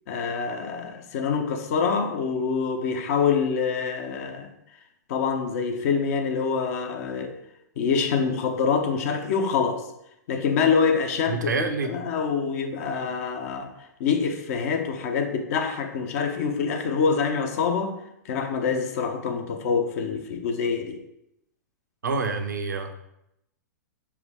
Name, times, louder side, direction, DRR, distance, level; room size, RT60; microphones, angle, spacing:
voice 1, 0.1-4.5 5.1-7.3 7.8-9.9 10.3-11.4 11.8-13.7 14.0-18.0 18.2-21.0, left 5 dB, 50° left, 5 dB, 0.9 m, -25 dB
voice 2, 11.3-11.9 22.0-22.9, right 4 dB, 75° right, 6 dB, 0.9 m, -27 dB
6.0 x 4.7 x 3.6 m, 0.81 s
figure-of-eight pair, 105°, 10 cm